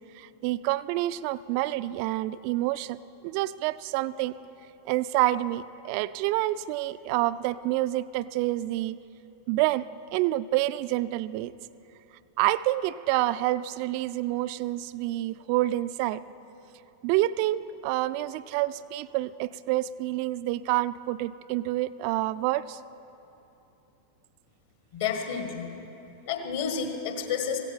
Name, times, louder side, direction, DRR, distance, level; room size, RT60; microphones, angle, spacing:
voice 1, 0.2-3.0 3.2-4.3 4.9-9.0 9.5-9.8 10.1-11.5 12.4-16.2 17.0-22.8, right 16 dB, 45° right, 17 dB, 0.3 m, -28 dB
voice 2, 24.9-25.7 26.2-27.6, left 6 dB, 50° left, 4 dB, 1.6 m, -30 dB
16.0 x 16.0 x 4.1 m, 2.9 s
figure-of-eight pair, 90°, 0 cm